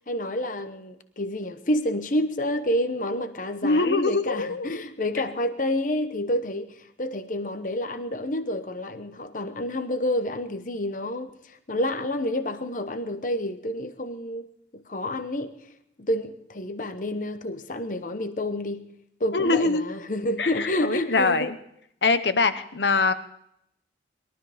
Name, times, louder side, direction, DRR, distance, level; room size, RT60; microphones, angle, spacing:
voice 1, 0.1-14.5 14.7-15.7 16.0-18.9 19.2-21.5, left 1 dB, 45° left, 0.9 m, -29 dB
voice 2, 3.6-4.8 19.3-19.9 20.4-21.6 22.0-23.1, left 3 dB, 70° left, 1.0 m, -23 dB
21.5 x 13.0 x 5.0 m
head